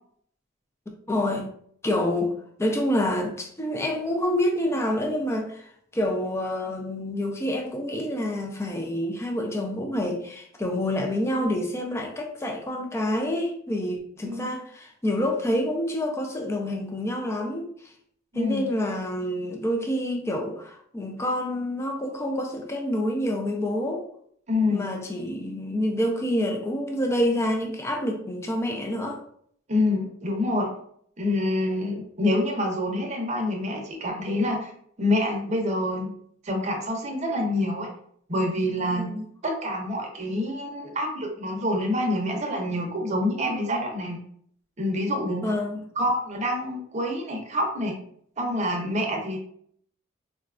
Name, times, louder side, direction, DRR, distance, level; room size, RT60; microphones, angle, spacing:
voice 1, 1.1-1.5 1.8-2.3 2.6-17.9 18.3-24.0 24.7-29.2 38.9-39.3 45.4-45.8, left 1 dB, 15° left, 1 dB, 0.3 m, -27 dB
voice 2, 18.3-18.6 24.5-24.8 29.7-30.7 31.2-34.7 35.0-36.1 36.4-37.9 38.3-39.1 39.4-44.2 44.8-45.5 46.0-48.0 48.4-49.4, left 1 dB, 35° right, 1 dB, 0.6 m, -26 dB
3.9 x 2.3 x 2.4 m, 0.64 s
head